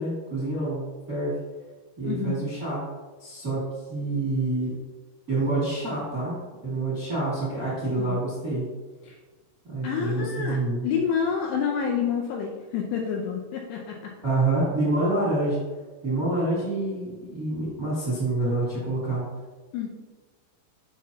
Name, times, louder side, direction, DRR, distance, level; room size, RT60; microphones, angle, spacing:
voice 1, 0.0-1.4 2.0-2.8 3.2-4.7 5.3-8.7 9.6-10.8 14.2-15.6 16.0-19.2, right 2 dB, 40° right, -7 dB, 1.2 m, -27 dB
voice 2, 2.0-2.4 8.0-8.2 9.0-9.2 9.8-14.1 19.7-19.9, left 7 dB, 80° left, 0 dB, 2.6 m, -28 dB
7.1 x 6.2 x 2.8 m, 1.3 s
omnidirectional pair, 5.5 m